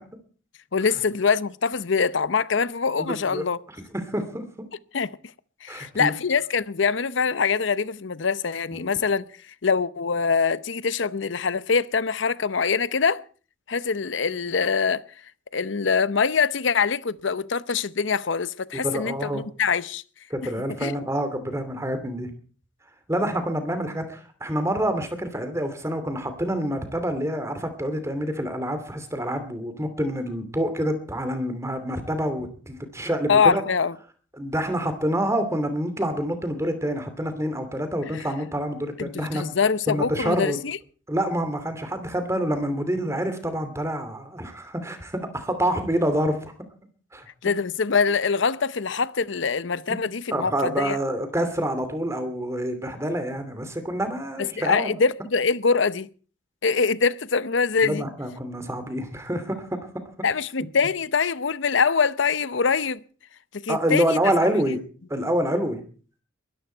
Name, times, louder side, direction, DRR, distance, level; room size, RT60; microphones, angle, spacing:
voice 1, 0.7-3.6 4.9-5.1 5.6-9.3 9.6-13.2 13.7-15.0 15.5-20.0 20.8-20.9 33.3-33.9 38.1-38.2 39.0-40.8 47.4-51.0 54.4-56.1 56.6-58.1 60.2-63.0 63.5-64.2, left 5 dB, 70° left, 0.7 m, -24 dB
voice 2, 3.0-3.4 3.9-4.7 5.7-6.1 8.7-8.9 18.7-19.4 20.3-22.3 23.1-33.6 34.4-39.4 39.9-40.6 41.1-46.5 47.1-47.3 50.3-54.9 57.8-60.0 63.7-64.8 65.1-65.8, equal, 15° right, 2.6 m, -27 dB
22.0 x 13.5 x 4.5 m
head